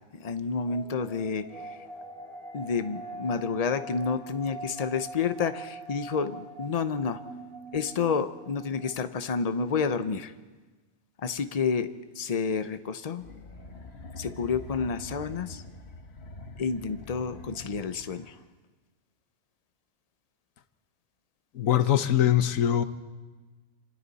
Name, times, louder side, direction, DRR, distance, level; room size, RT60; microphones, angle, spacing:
voice 1, 0.1-1.8 2.5-7.2 7.7-10.3 11.2-13.2 14.2-15.6 16.6-18.3, left 5 dB, 35° left, 11 dB, 0.7 m, -30 dB
sound 1, 0.6-9.1, right 1 dB, 70° right, 3.3 m, -43 dB
sound 2, 13.2-18.4, left 3 dB, 50° left, 1.7 m, -45 dB
voice 2, 21.5-22.8, left 11 dB, 80° left, 11 dB, 1.3 m, -22 dB
26.5 x 26.5 x 4.2 m, 1.3 s
omnidirectional pair, 1.4 m